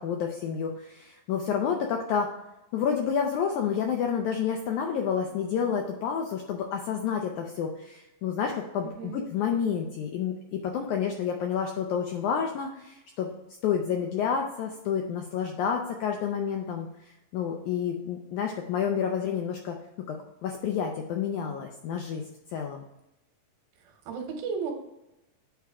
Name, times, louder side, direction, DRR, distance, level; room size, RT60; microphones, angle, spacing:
voice 1, 0.0-2.3 2.7-13.3 13.6-19.8 20.1-22.2 22.5-22.8, left 7 dB, 80° left, 3 dB, 1.7 m, -29 dB
voice 2, 8.8-9.3 24.1-24.7, right 6 dB, 85° right, 3 dB, 3.0 m, -34 dB
9.2 x 3.5 x 4.7 m, 0.93 s
omnidirectional pair, 4.2 m